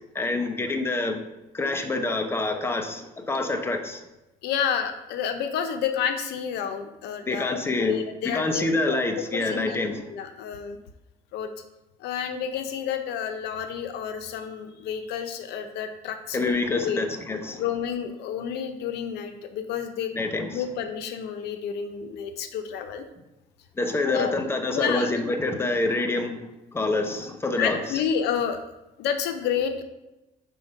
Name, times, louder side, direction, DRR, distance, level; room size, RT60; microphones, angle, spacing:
voice 1, 0.1-1.2 1.5-4.0 7.3-8.0 8.3-10.0 16.3-17.6 20.1-20.6 23.8-26.4 26.7-27.8, left 2 dB, 15° left, 5 dB, 0.8 m, -26 dB
voice 2, 4.4-9.0 9.3-9.8 10.1-10.8 11.3-11.5 12.0-17.0 17.6-20.1 20.5-23.0 24.1-24.3 24.7-25.1 27.6-28.6 29.0-29.8, left 8 dB, 80° left, 8 dB, 0.8 m, -30 dB
5.5 x 4.5 x 5.4 m, 0.97 s
cardioid pair, 110°, 17 cm